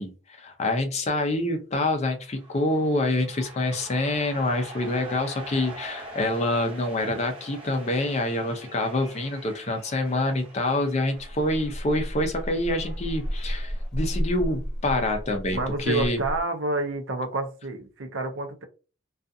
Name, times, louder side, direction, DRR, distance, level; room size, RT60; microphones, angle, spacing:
voice 1, 0.0-16.2, left 1 dB, 30° left, 0.5 m, -26 dB
sound 1, 2.3-13.9, right 1 dB, 25° right, 0.8 m, -44 dB
sound 2, 11.1-16.4, equal, 5° left, 1.2 m, -32 dB
voice 2, 15.5-18.6, right 2 dB, 65° right, 0.6 m, -29 dB
2.4 x 2.3 x 2.6 m
head